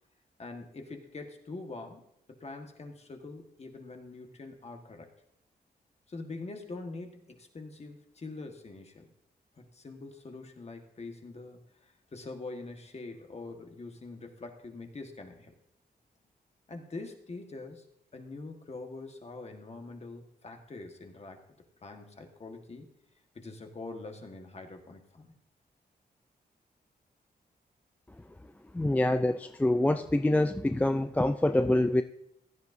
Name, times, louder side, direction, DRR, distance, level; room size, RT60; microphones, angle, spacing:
voice 1, 0.4-2.0 2.4-5.1 6.1-9.1 9.6-15.5 16.7-17.9 18.1-21.4 21.8-22.9 23.3-25.3, left 3 dB, 40° left, 4 dB, 1.6 m, -44 dB
voice 2, 28.7-32.0, left 1 dB, 10° left, 8 dB, 0.4 m, -26 dB
16.0 x 10.5 x 2.7 m, 0.77 s
cardioid pair, 90°, 17 cm